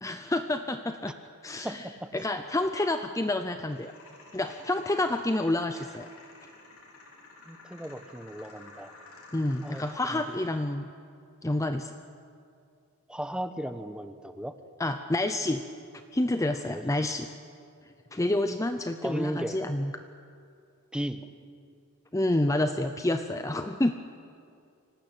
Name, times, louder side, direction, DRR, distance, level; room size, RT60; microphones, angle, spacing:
voice 1, 0.0-1.1 1.4-1.9 2.1-3.9 4.3-6.1 9.3-10.9 11.4-11.9 14.8-15.6 16.1-17.3 18.1-19.9 22.1-23.9, left 1 dB, 15° left, 7 dB, 0.6 m, -28 dB
voice 2, 1.6-2.1 7.5-8.9 9.6-9.8 10.1-10.2 13.1-14.5 16.6-16.8 19.0-19.6 20.9-21.2, right 1 dB, 5° right, 9 dB, 1.1 m, -35 dB
sound 1, 3.7-10.7, left 3 dB, 80° left, 5.3 m, -52 dB
25.0 x 18.5 x 8.9 m, 2.4 s
head